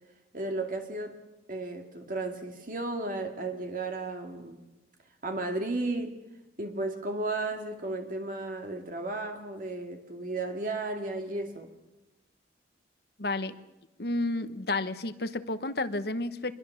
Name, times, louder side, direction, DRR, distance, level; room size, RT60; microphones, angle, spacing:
voice 1, 0.3-1.2 1.5-4.6 5.2-6.1 6.6-11.7, right 2 dB, 45° right, 4 dB, 2.2 m, -34 dB
voice 2, 13.2-13.5 14.0-16.5, left 2 dB, 60° left, 12 dB, 1.1 m, -31 dB
25.0 x 21.5 x 7.2 m, 1.0 s
head